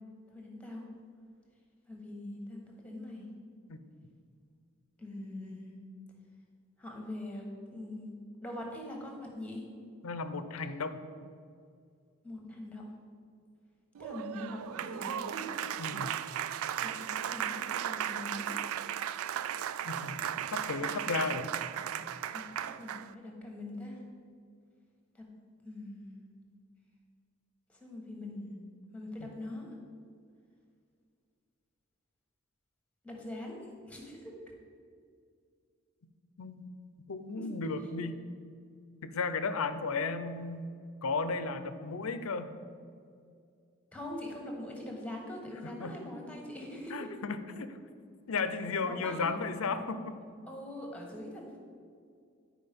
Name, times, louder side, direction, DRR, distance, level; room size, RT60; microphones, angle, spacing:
voice 1, 0.3-0.9 1.9-3.3 5.0-5.7 6.8-7.5 7.7-8.1 8.4-9.6 12.2-12.8 14.0-15.6 16.8-18.6 22.3-24.0 25.1-25.2 25.6-26.2 27.7-28.6 28.9-29.7 33.0-34.3 37.3-37.5 43.9-47.1 48.8-49.2 50.5-51.6, left 1 dB, 5° left, 0 dB, 1.2 m, -43 dB
voice 2, 10.0-11.0 15.8-16.2 19.9-20.2 20.5-21.6 29.2-29.3 36.4-36.7 37.1-38.2 39.0-40.7 41.0-42.5 45.8-45.9 46.9-47.8 48.3-50.2, left 4 dB, 85° left, 11 dB, 0.6 m, -34 dB
Applause, 13.9-23.1, right 10 dB, 85° right, 0.3 m, -36 dB
9.9 x 4.9 x 5.2 m, 2.3 s
head